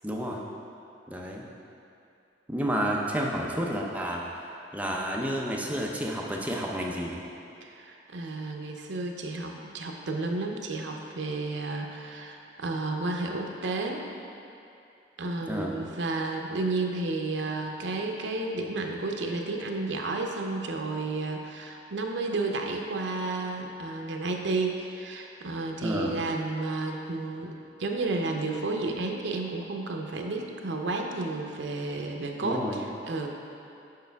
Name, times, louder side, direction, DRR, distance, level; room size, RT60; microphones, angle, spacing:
voice 1, 0.0-0.4 1.1-1.5 2.5-4.4 4.7-7.2 15.5-15.7 25.8-26.2 32.4-32.8, equal, 10° right, -2 dB, 0.5 m, -30 dB
voice 2, 7.6-14.0 15.2-33.3, right 3 dB, 80° right, 2 dB, 0.6 m, -32 dB
6.6 x 5.1 x 3.4 m, 2.7 s
head